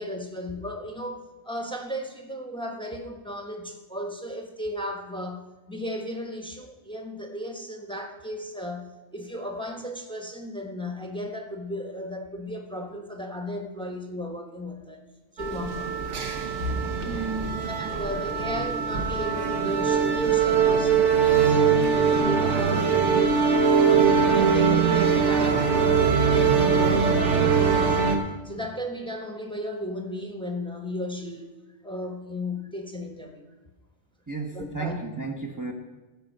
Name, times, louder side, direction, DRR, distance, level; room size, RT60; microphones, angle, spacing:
voice 1, 0.0-15.1 15.3-16.0 17.7-21.2 22.4-23.0 24.1-28.2 28.4-31.5 31.8-33.4 34.5-35.0, left 1 dB, 5° left, 3 dB, 1.0 m, -35 dB
sound 1, 15.4-28.2, right 6 dB, 75° right, 1.5 m, -22 dB
voice 2, 17.0-17.9 34.3-35.7, right 3 dB, 20° right, 0 dB, 0.7 m, -33 dB
15.0 x 5.4 x 6.5 m, 1.2 s
omnidirectional pair, 1.2 m